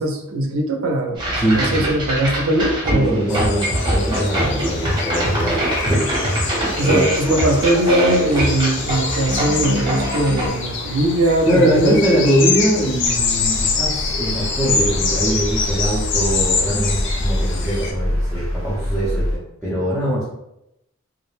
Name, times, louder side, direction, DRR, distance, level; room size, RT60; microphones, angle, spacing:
voice 1, 0.0-3.3 6.8-12.3, right 1 dB, 85° right, 3 dB, 0.5 m, -20 dB
sound 1, 1.2-10.5, right 1 dB, 20° right, 0.8 m, -23 dB
voice 2, 1.4-1.9 2.9-6.1 6.3-6.4 6.8-7.1 11.5-20.2, right 1 dB, 5° left, -10 dB, 0.5 m, -22 dB
sound 2, 3.3-17.9, left 4 dB, 60° left, 0.4 m, -25 dB
sound 3, 13.0-19.4, equal, 80° left, 1.1 m, -25 dB
2.4 x 2.1 x 3.1 m, 0.84 s
head